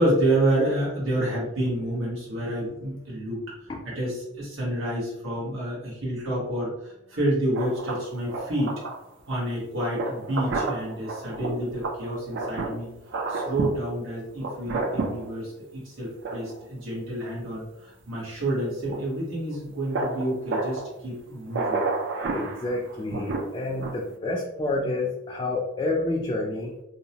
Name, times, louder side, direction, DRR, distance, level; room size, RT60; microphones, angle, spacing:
voice 1, 0.0-3.4 3.8-8.7 9.3-12.9 13.3-21.8, right 1 dB, 75° right, -6 dB, 1.1 m, -28 dB
sound 1, 7.5-9.0 9.3-9.4 10.0-12.8 13.1-13.8 14.4-15.3 16.2-16.6 18.8-19.0 19.5-19.6 19.9-20.9 21.5-24.0, right 3 dB, 60° right, 0.4 m, -30 dB
voice 2, 22.3-26.7, left 2 dB, 20° left, -2 dB, 0.3 m, -29 dB
2.7 x 2.0 x 2.7 m, 0.89 s
head